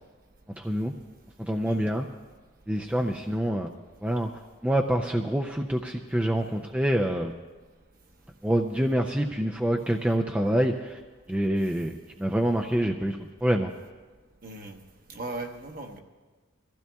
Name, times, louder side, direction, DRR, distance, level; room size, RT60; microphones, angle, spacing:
voice 1, 0.6-0.9 1.4-2.1 2.7-3.7 4.0-4.3 4.6-7.3 8.4-11.0 11.3-13.7, right 1 dB, 5° right, 2 dB, 0.4 m, -26 dB
voice 2, 14.4-14.8 15.1-16.0, right 2 dB, 45° right, 4 dB, 1.0 m, -38 dB
23.0 x 15.0 x 2.3 m, 1.3 s
head